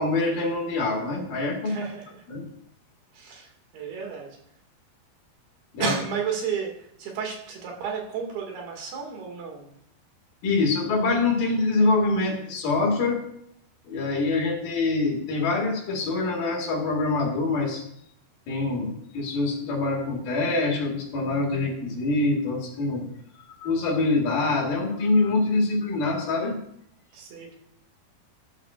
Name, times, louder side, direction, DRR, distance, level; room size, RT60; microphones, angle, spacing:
voice 1, 0.0-1.9 2.3-2.5 5.7-5.9 10.4-13.2 13.9-17.8 18.5-23.1 23.4-26.6, left 3 dB, 65° left, 0 dB, 3.7 m, -25 dB
voice 2, 1.7-2.2 3.1-4.4 5.8-9.8 27.1-27.6, right 6 dB, 70° right, 1 dB, 4.0 m, -32 dB
13.5 x 13.0 x 2.5 m, 0.72 s
omnidirectional pair, 4.7 m